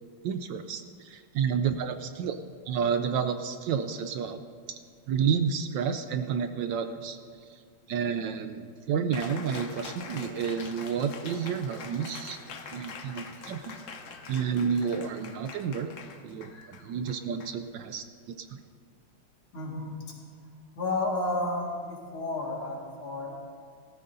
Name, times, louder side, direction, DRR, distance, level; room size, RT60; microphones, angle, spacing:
voice 1, 0.2-2.4 2.7-4.4 5.1-7.2 7.5-7.6 7.9-12.4 12.7-13.8 14.3-15.9 16.2-18.6, right 7 dB, 75° right, 8 dB, 1.1 m, -30 dB
Cheering, 9.1-18.1, left 5 dB, 55° left, 0.9 m, -45 dB
voice 2, 19.5-20.2 20.8-23.4, left 2 dB, 90° left, -2 dB, 2.8 m, -32 dB
19.0 x 13.5 x 2.7 m, 2.1 s
omnidirectional pair, 2.3 m